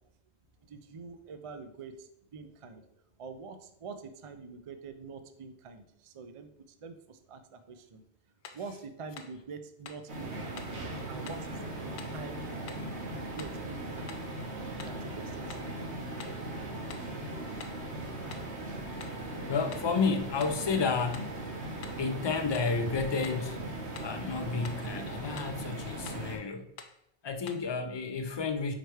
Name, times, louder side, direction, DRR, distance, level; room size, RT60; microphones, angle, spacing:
voice 1, 0.6-2.9 3.2-8.0 8.5-10.7 11.1-14.2 14.8-15.9, right 4 dB, 50° right, 9 dB, 0.4 m, -46 dB
sound 1, 8.4-8.7 9.2-9.4 9.9-10.1 10.6-10.8 11.3-11.5 12.0-12.2 12.7-12.9 13.4-13.6 14.1-14.3 14.8-15.0 15.5-15.7 16.2-16.4 16.9-17.2 17.6-17.8 18.3-18.6 19.0-19.2 19.7-19.9 20.4-20.6 21.1-21.4 21.8-22.1 22.5-22.8 23.2-23.5 23.9-24.2 24.6-24.9 25.3-25.6 26.1-26.3 26.8-27.0 27.5-27.7, left 6 dB, 75° left, 0.9 m, -48 dB
sound 2, 10.1-26.4, right 2 dB, 70° right, 1.6 m, -39 dB
voice 2, 19.5-21.5 22.0-23.6 24.0-26.7 27.2-28.7, left 4 dB, 45° left, 7 dB, 0.3 m, -31 dB
4.9 x 4.5 x 4.7 m, 0.76 s
omnidirectional pair, 1.2 m